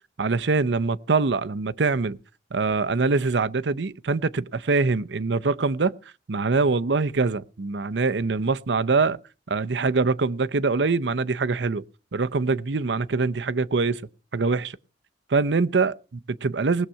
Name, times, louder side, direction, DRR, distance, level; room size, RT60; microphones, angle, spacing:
voice 1, 0.2-2.2 2.5-5.9 6.3-9.2 9.5-11.8 12.1-14.0 14.3-14.8 15.3-16.9, right 4 dB, 70° right, 0.7 m, -24 dB
19.5 x 7.5 x 5.6 m
head